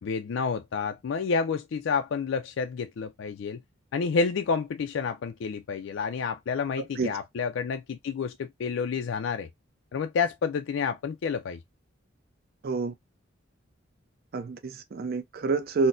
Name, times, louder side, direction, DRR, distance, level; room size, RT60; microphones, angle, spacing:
voice 1, 0.0-3.6 3.9-9.5 9.9-11.6, left 5 dB, 65° left, 0.3 m, -29 dB
voice 2, 6.8-7.2 12.6-12.9 14.3-15.9, right 4 dB, 50° right, 0.4 m, -28 dB
4.1 x 2.1 x 2.5 m
head